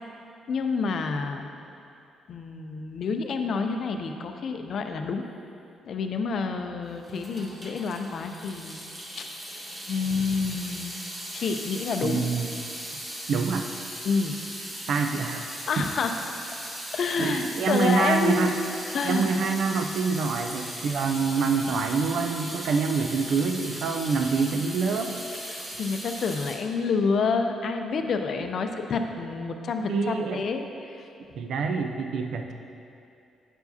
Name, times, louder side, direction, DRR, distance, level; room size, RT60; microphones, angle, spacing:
voice 1, 0.5-1.5 2.3-5.2 5.9-8.8 9.2-9.3 9.9-10.9 11.3-12.2 14.0-14.4 15.7-16.1 16.9-18.6 18.9-19.3 25.5-31.1, left 5 dB, 60° left, 6 dB, 0.4 m, -28 dB
Water tap faucet / Sink (filling or washing) / Drip, 7.0-26.6, equal, 20° right, 1.1 m, -38 dB
voice 2, 12.0-12.5 13.3-13.7 14.9-15.4 17.2-18.6 19.0-25.2 29.9-30.4 31.4-32.5, right 4 dB, 70° right, 5 dB, 0.3 m, -26 dB
7.8 x 4.7 x 2.7 m, 2.6 s
cardioid pair, 90°, 0 cm